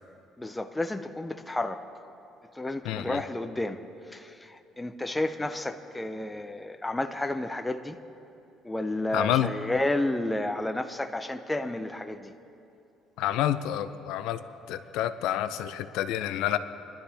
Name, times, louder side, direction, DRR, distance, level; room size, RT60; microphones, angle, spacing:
voice 1, 0.4-1.8 2.5-3.8 4.1-8.0 8.6-12.3, left 1 dB, 10° left, 8 dB, 0.5 m, -31 dB
voice 2, 2.8-3.2 9.1-9.5 13.2-14.4 14.7-16.6, left 12 dB, 80° left, 11 dB, 0.5 m, -28 dB
23.5 x 11.5 x 3.4 m, 2.7 s
cardioid pair, 150°, 0 cm